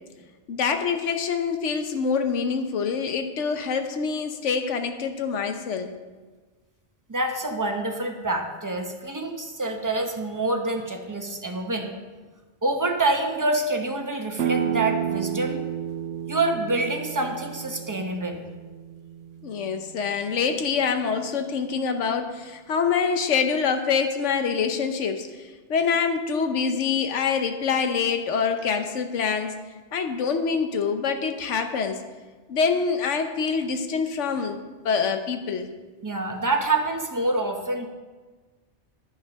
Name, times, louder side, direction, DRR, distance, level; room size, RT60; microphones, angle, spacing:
voice 1, 0.5-5.9 19.4-29.5 29.9-32.0 32.5-34.6 34.8-35.7, left 6 dB, 90° left, 7 dB, 1.2 m, -25 dB
voice 2, 7.1-11.9 12.6-15.6 16.3-18.4 36.0-37.9, right 2 dB, 20° right, 3 dB, 0.9 m, -26 dB
sound 1, 14.4-20.0, right 9 dB, 85° right, 0.9 m, -31 dB
10.0 x 7.4 x 5.2 m, 1.3 s
omnidirectional pair, 1.2 m